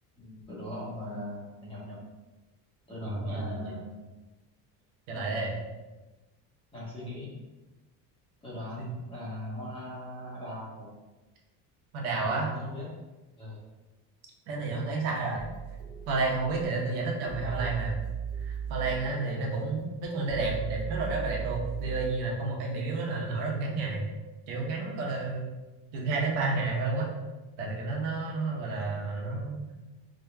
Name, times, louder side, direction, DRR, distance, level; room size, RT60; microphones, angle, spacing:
voice 1, 0.2-2.0 2.9-3.9 5.1-5.3 6.7-7.3 8.4-10.9 12.2-12.9 13.4-13.6 17.2-17.9, left 1 dB, 15° left, -7 dB, 1.1 m, -40 dB
voice 2, 3.0-3.7 5.1-5.5 8.8-8.9 11.9-12.5 14.5-15.4 16.1-17.9 18.4-24.0 24.5-25.5 25.9-27.1 27.6-29.7, right 3 dB, 90° right, -2 dB, 1.1 m, -31 dB
sound 1, 15.4-22.1, right 7 dB, 40° right, 0.8 m, -38 dB
4.9 x 2.8 x 2.3 m, 1.1 s
cardioid pair, 170°, 39 cm